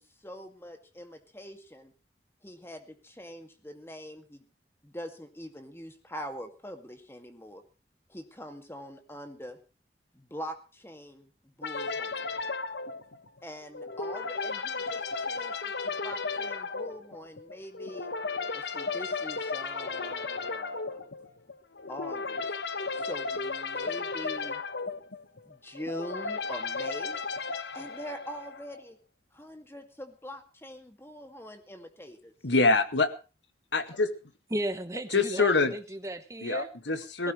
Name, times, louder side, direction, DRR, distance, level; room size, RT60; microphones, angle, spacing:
voice 1, 0.0-1.9 2.4-4.5 4.8-7.6 8.1-9.6 10.1-12.3 13.4-18.1 18.5-21.1 21.9-22.6 22.9-24.6 25.5-27.2 27.7-29.0 29.3-32.3, equal, 15° left, 2.1 m, -43 dB
sound 1, 11.6-28.8, left 4 dB, 75° left, 1.2 m, -35 dB
voice 2, 32.4-33.1 33.7-34.1 35.1-35.7 36.4-37.3, left 3 dB, 90° left, 1.8 m, -25 dB
voice 3, 34.5-36.7 37.2-37.3, right 1 dB, 15° right, 1.2 m, -35 dB
18.0 x 16.5 x 3.2 m
head